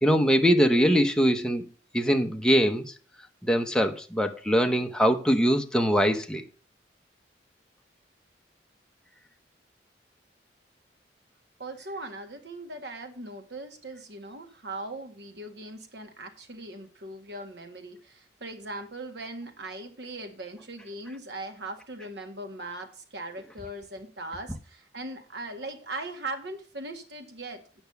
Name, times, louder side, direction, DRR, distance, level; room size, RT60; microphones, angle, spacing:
voice 1, 0.0-1.6 1.9-2.9 3.4-6.4, equal, 5° left, 0.7 m, -22 dB
voice 2, 11.6-27.8, right 2 dB, 70° right, 1.8 m, -39 dB
8.7 x 5.8 x 6.8 m
head